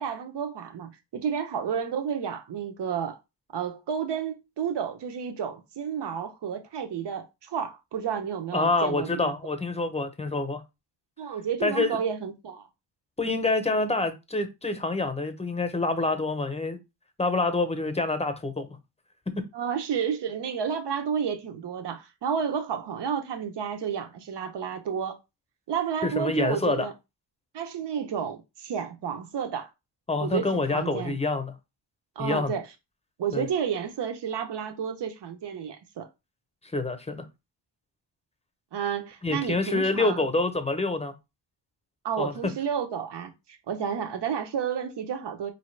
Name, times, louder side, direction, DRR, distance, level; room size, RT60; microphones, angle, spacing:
voice 1, 0.0-3.2 3.5-9.3 11.2-12.7 19.5-25.2 25.7-26.9 27.5-29.7 30.2-31.2 32.2-32.7 33.2-36.1 38.7-40.3 42.0-45.5, right 7 dB, 70° right, 0.8 m, -31 dB
voice 2, 8.5-10.6 11.6-12.0 13.2-16.8 17.2-18.8 26.0-26.9 30.1-31.5 32.2-32.5 33.3-33.5 36.7-37.2 39.2-41.1 42.2-42.3, left 3 dB, 15° left, 0.7 m, -27 dB
4.5 x 2.8 x 3.2 m
wide cardioid pair, 100°, 42 cm